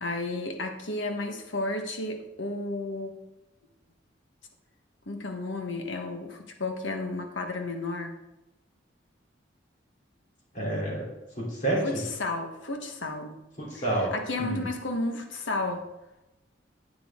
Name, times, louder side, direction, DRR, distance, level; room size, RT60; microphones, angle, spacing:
voice 1, 0.0-3.1 5.1-8.1 11.8-13.4 13.7-15.8, left 2 dB, 80° left, 4 dB, 1.3 m, -32 dB
voice 2, 10.5-11.1 11.4-12.0 13.6-14.1 14.4-14.7, right 1 dB, 45° left, -3 dB, 3.5 m, -29 dB
10.0 x 8.6 x 3.7 m, 0.96 s
head